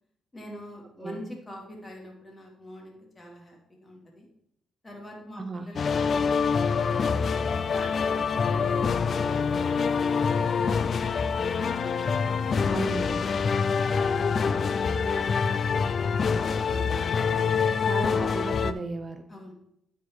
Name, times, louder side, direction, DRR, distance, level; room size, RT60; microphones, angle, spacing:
voice 1, 0.3-4.3 4.8-7.1 7.7-11.7 12.2-17.4 19.3-19.5, equal, 20° left, 0 dB, 2.5 m, -45 dB
voice 2, 5.4-5.7 12.7-13.2 17.9-19.2, right 3 dB, 35° right, 8 dB, 0.6 m, -34 dB
sound 1, 5.8-18.7, left 5 dB, 45° left, 0.4 m, -25 dB
sound 2, 8.6-15.6, right 4 dB, 65° right, 1.6 m, -51 dB
9.2 x 4.8 x 4.6 m, 0.74 s
cardioid pair, 90°, 0 cm